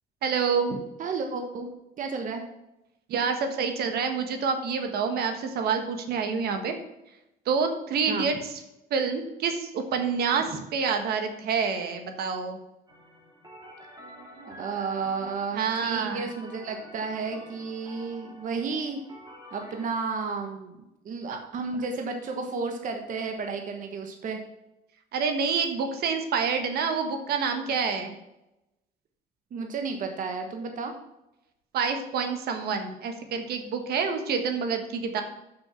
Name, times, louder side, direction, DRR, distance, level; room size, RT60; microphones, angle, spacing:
voice 1, 0.2-0.8 3.1-6.7 7.4-8.3 8.9-12.6 15.5-16.2 25.1-28.1 31.7-35.2, right 5 dB, 70° right, 6 dB, 1.4 m, -27 dB
voice 2, 1.0-1.7 2.0-2.4 8.1-8.3 10.5-10.6 14.4-19.0 19.5-24.4 29.5-30.9, right 4 dB, 50° right, 4 dB, 1.2 m, -32 dB
sound 1, 12.9-19.9, equal, 20° right, 2.9 m, -48 dB
7.1 x 6.4 x 5.8 m, 0.91 s
cardioid pair, 110°, 17 cm